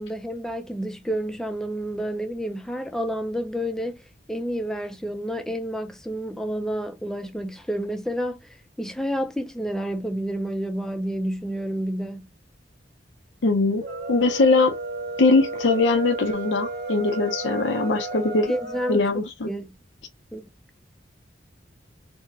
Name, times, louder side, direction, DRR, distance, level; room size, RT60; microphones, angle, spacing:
voice 1, 0.0-4.0 4.3-12.3 18.5-19.1 19.5-19.7 20.3-20.5, equal, 5° left, 0.4 m, -29 dB
voice 2, 13.4-14.8 15.2-18.5 18.9-19.5, left 3 dB, 85° left, 0.6 m, -21 dB
sound 1, 13.7-19.0, right 2 dB, 60° right, 0.9 m, -33 dB
4.4 x 2.1 x 2.7 m
head